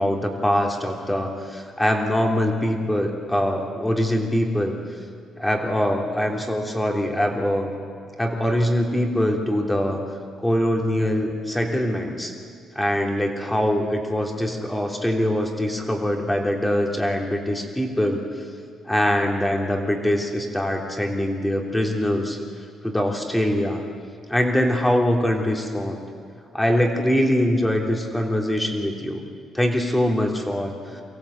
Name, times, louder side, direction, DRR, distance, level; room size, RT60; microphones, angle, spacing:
voice 1, 0.0-4.8 5.4-7.7 8.2-10.1 10.4-12.3 12.7-18.2 18.9-22.4 22.8-23.8 24.3-26.0 26.5-29.2 29.5-30.8, equal, 10° left, 2 dB, 3.3 m, -23 dB
24.0 x 16.0 x 8.2 m, 2.2 s
cardioid pair, 90°, 0 cm